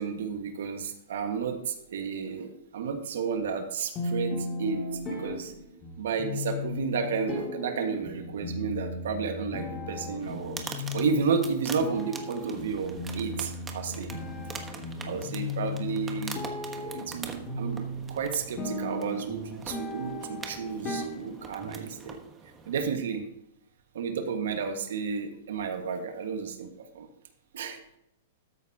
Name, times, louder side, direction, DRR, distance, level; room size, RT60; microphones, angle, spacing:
voice 1, 0.0-4.8 5.1-5.5 6.0-10.6 10.9-14.1 15.0-16.4 16.7-22.2 22.7-23.2 23.9-26.7 26.9-27.1 27.5-28.0, right 6 dB, 80° right, 5 dB, 1.6 m, -32 dB
sound 1, 4.0-21.9, left 2 dB, 30° left, 2.5 m, -36 dB
sound 2, 10.2-22.9, right 4 dB, 15° right, 1.2 m, -44 dB
13.5 x 8.2 x 2.9 m, 0.79 s
hypercardioid pair, 145°, 0 cm